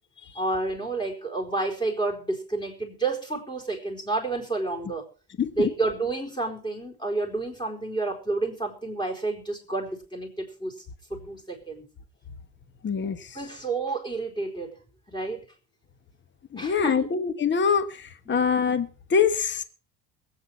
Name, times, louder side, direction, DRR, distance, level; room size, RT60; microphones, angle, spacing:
voice 1, 0.3-5.1 5.5-10.7 11.1-11.8 13.3-14.8 15.1-15.4 16.6-17.1, right 3 dB, 10° left, 4.5 m, -30 dB
voice 2, 5.4-5.7 12.8-13.2 16.5-17.9 18.3-19.6, left 6 dB, 30° left, 1.3 m, -24 dB
22.0 x 9.0 x 4.6 m
cardioid pair, 115°, 36 cm